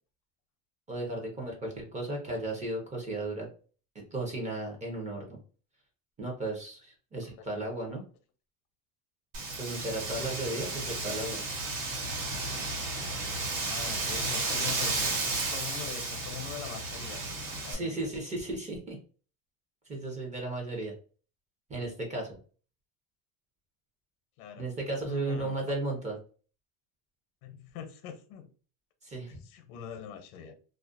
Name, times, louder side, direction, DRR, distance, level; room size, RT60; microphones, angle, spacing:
voice 1, 0.9-3.5 3.9-5.4 6.2-8.0 9.6-11.4 17.7-19.0 19.9-20.9 21.7-22.4 24.6-26.2 29.0-29.4, right 2 dB, 15° right, 0.5 m, -35 dB
Wind, 9.3-17.7, right 3 dB, 60° right, 1.2 m, -33 dB
voice 2, 13.6-15.0 15.4-17.2 17.6-18.1 24.4-24.7 25.0-25.7 27.4-28.5 29.4-30.6, left 8 dB, 85° left, 0.7 m, -42 dB
2.4 x 2.1 x 2.5 m
supercardioid pair, 140°, 43 cm